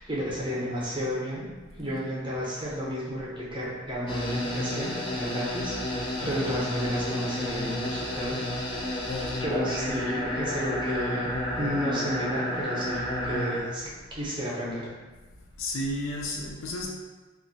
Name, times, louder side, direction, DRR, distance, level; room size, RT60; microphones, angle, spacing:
voice 1, 0.0-1.4 1.8-8.4 8.8-9.0 9.4-14.9, equal, 25° right, -6 dB, 0.6 m, -32 dB
sound 1, 4.1-13.6, left 1 dB, 25° left, 0.4 m, -31 dB
voice 2, 15.6-16.9, left 1 dB, 85° left, -1 dB, 0.4 m, -32 dB
2.4 x 2.1 x 3.9 m, 1.3 s
head